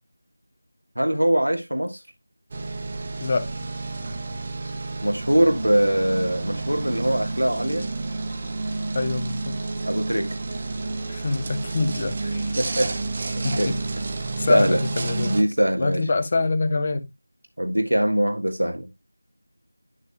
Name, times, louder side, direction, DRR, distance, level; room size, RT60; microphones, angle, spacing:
voice 1, 1.0-2.0 5.0-7.9 9.9-10.3 12.6-12.9 13.4-13.7 14.5-14.8 15.2-16.0 17.6-18.9, right 1 dB, 80° right, 1.5 m, -22 dB
sound 1, 2.5-15.4, right 3 dB, 25° right, 1.0 m, -30 dB
voice 2, 3.2-3.5 8.9-9.6 11.1-12.5 13.4-13.8 14.4-15.4 15.8-17.1, left 3 dB, 25° left, 0.8 m, -25 dB
11.0 x 6.7 x 2.3 m
figure-of-eight pair, 170°, 0 cm